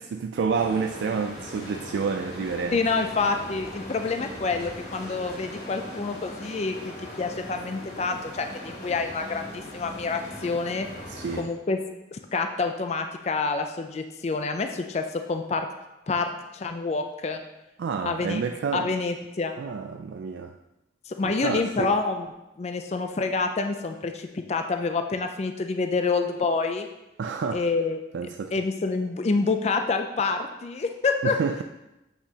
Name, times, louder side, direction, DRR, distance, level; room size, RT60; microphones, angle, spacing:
voice 1, 0.1-2.8 11.1-11.5 17.8-18.9 19.6-20.5 21.2-22.0 27.2-27.7 28.1-28.5 31.2-31.6, right 5 dB, 70° right, 5 dB, 0.3 m, -29 dB
sound 1, 0.5-11.4, left 1 dB, 55° left, 2.5 m, -40 dB
voice 2, 2.7-10.9 11.3-11.8 12.1-15.7 16.1-17.4 18.1-18.4 18.7-19.5 21.1-22.3 22.6-26.9 27.5-28.0 28.5-31.4, left 4 dB, 35° left, 6 dB, 0.4 m, -27 dB
8.2 x 5.8 x 2.8 m, 0.96 s
head